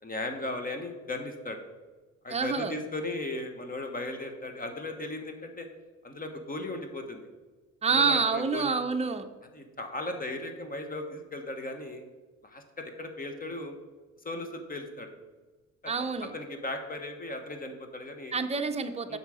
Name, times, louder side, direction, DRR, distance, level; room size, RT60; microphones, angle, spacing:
voice 1, 0.0-1.6 2.2-5.7 6.0-7.3 7.9-8.7 9.5-12.0 12.4-13.7 14.2-15.1 15.8-18.4 19.1-19.2, left 2 dB, 30° left, 5 dB, 1.2 m, -37 dB
voice 2, 2.3-2.8 7.8-9.3 15.9-16.3 18.3-19.2, right 5 dB, 20° right, 6 dB, 0.7 m, -27 dB
8.1 x 5.6 x 4.9 m, 1.3 s
cardioid pair, 90°, 30 cm